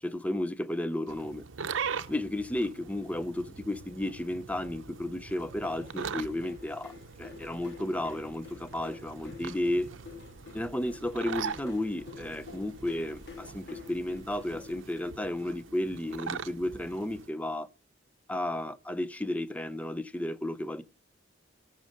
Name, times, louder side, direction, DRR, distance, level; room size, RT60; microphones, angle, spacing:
voice 1, 0.0-1.4 2.1-6.9 7.2-9.9 10.5-17.7 18.3-20.8, left 1 dB, 5° left, 0.5 m, -33 dB
sound 1, 1.1-17.3, right 6 dB, 80° right, 0.7 m, -42 dB
sound 2, 5.6-14.8, left 4 dB, 60° left, 2.6 m, -48 dB
17.0 x 6.4 x 5.0 m
head